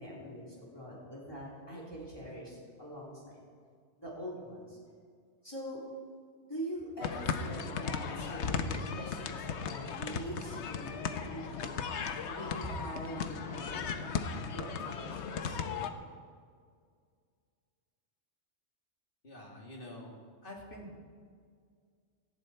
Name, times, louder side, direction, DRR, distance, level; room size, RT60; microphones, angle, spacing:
voice 1, 0.0-3.4 4.0-4.8 5.4-5.8 6.5-11.7 12.2-14.2 14.5-15.6, equal, 20° left, -6 dB, 3.5 m, -43 dB
sound 1, 7.0-15.9, left 6 dB, 80° left, 1.1 m, -36 dB
voice 2, 19.2-20.2 20.4-21.0, left 1 dB, 50° left, -1 dB, 2.7 m, -47 dB
17.5 x 13.5 x 4.4 m, 2.1 s
omnidirectional pair, 1.2 m